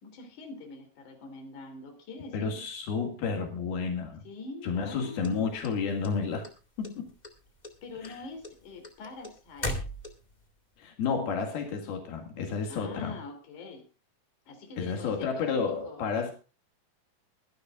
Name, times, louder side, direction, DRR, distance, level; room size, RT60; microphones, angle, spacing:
voice 1, 0.0-2.6 4.2-5.4 7.8-9.8 12.7-13.9 14.5-16.0, left 3 dB, 55° left, 5 dB, 4.4 m, -44 dB
voice 2, 2.3-4.2 4.6-6.5 6.8-7.1 8.0-8.2 10.8-13.2 14.8-16.3, left 5 dB, 85° left, 3 dB, 4.0 m, -31 dB
sound 1, 5.2-6.5 6.8-7.4 7.6-10.4, left 1 dB, 20° left, 1.2 m, -36 dB
22.5 x 11.5 x 2.4 m, 0.33 s
omnidirectional pair, 4.3 m